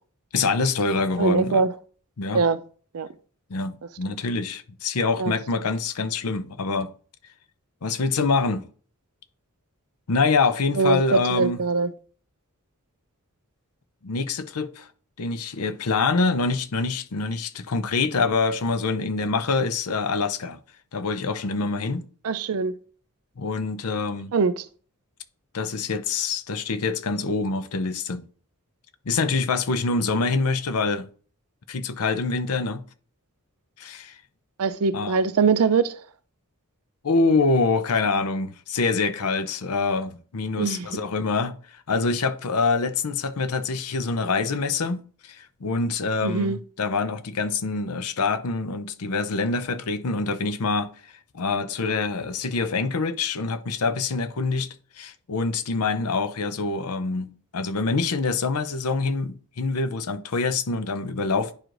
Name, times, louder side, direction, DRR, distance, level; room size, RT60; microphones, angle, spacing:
voice 1, 0.3-1.6 2.2-2.4 3.5-6.9 7.8-8.7 10.1-11.6 14.0-14.9 15.2-20.6 20.9-22.0 23.4-24.3 25.5-28.2 29.1-31.1 31.7-32.8 33.8-34.2 34.9-35.2 37.0-54.7 55.0-61.5, left 4 dB, 80° left, 0.6 m, -25 dB
voice 2, 1.2-1.7 2.3-2.6 2.9-3.1 5.2-5.3 10.8-11.9 22.2-22.7 24.3-24.6 34.6-36.0 40.6-40.9 46.2-46.6, right 4 dB, 80° right, 0.5 m, -22 dB
10.5 x 4.7 x 2.6 m
head